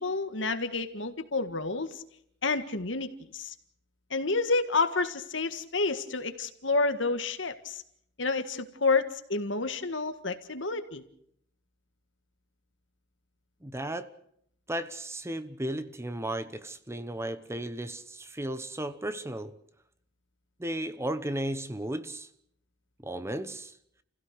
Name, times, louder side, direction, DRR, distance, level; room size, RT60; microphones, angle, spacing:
voice 1, 0.0-2.0 2.4-3.5 4.1-7.8 8.2-11.0, left 3 dB, 70° left, 1.8 m, -29 dB
voice 2, 13.6-14.1 14.7-19.5 20.6-22.3 23.0-23.7, right 1 dB, 15° right, 1.0 m, -34 dB
29.0 x 16.5 x 6.6 m
head